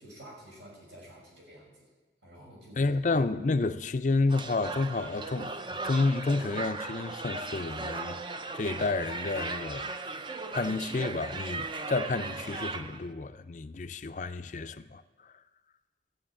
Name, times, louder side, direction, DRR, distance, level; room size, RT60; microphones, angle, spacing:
voice 1, 0.0-1.9 2.2-2.9 3.6-3.7, equal, 80° right, 6.1 m, -50 dB
voice 2, 2.8-5.5 5.8-8.2 8.5-9.9 10.5-15.3, left 3 dB, 40° left, 0.5 m, -30 dB
sound 1, 4.3-13.1, right 3 dB, 25° right, 0.5 m, -37 dB
13.5 x 7.9 x 8.8 m
head